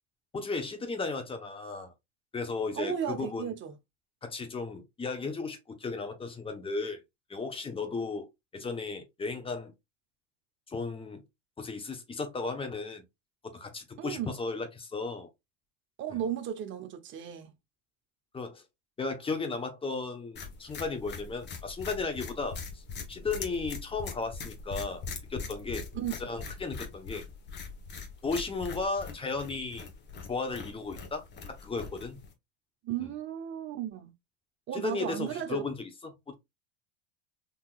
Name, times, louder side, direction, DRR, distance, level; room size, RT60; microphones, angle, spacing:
voice 1, 0.3-1.9 2.3-3.5 4.2-7.0 7.3-8.3 8.5-9.7 10.7-11.2 11.6-13.0 13.5-15.3 16.1-16.2 18.3-18.6 19.0-22.8 23.1-25.8 26.2-27.2 28.2-29.9 30.3-32.2 34.7-36.3, left 4 dB, 15° left, 1.0 m, -35 dB
voice 2, 2.7-3.7 14.0-14.3 16.0-17.5 25.9-26.2 32.8-34.1 34.7-35.6, right 9 dB, 35° right, 0.7 m, -35 dB
sound 1, 20.3-32.3, left 4 dB, 30° left, 1.2 m, -42 dB
3.9 x 2.8 x 2.4 m
supercardioid pair, 110°, 34 cm